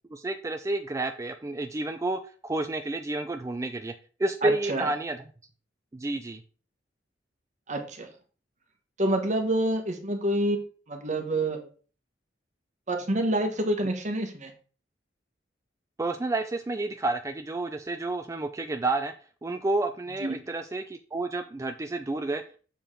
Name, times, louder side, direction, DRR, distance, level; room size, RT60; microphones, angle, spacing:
voice 1, 0.1-3.9 4.2-5.2 5.9-6.4 16.0-19.1 19.4-22.6, right 2 dB, 15° right, 7 dB, 0.3 m, -30 dB
voice 2, 4.4-4.9 7.7-8.1 9.0-10.6 10.9-11.6 12.9-14.5 20.2-20.3, right 1 dB, 40° right, 5 dB, 1.2 m, -27 dB
6.9 x 4.8 x 3.7 m, 0.40 s
head